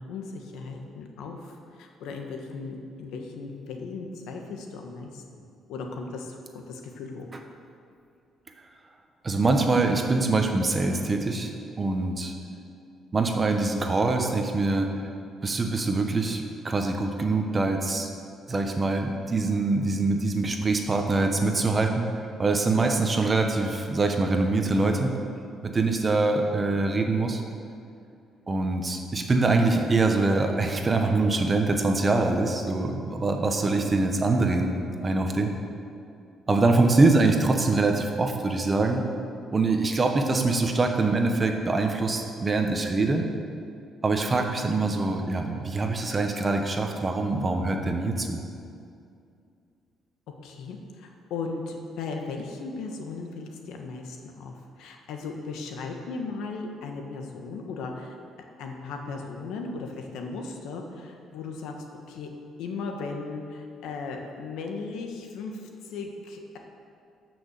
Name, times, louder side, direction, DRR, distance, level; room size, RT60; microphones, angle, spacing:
voice 1, 0.0-5.4 5.7-7.4 37.2-37.3 50.4-58.2 58.6-61.7 62.1-62.3 62.6-66.6, left 4 dB, 90° left, 3 dB, 1.5 m, -37 dB
voice 2, 9.2-11.5 11.8-12.3 13.1-14.9 15.4-18.1 18.5-22.1 22.4-25.1 25.6-27.4 28.5-34.7 35.0-35.5 36.5-39.0 39.5-43.2 44.0-48.4, right 3 dB, 25° right, 4 dB, 1.1 m, -24 dB
14.0 x 6.2 x 6.6 m, 2.4 s
cardioid pair, 145°, 0 cm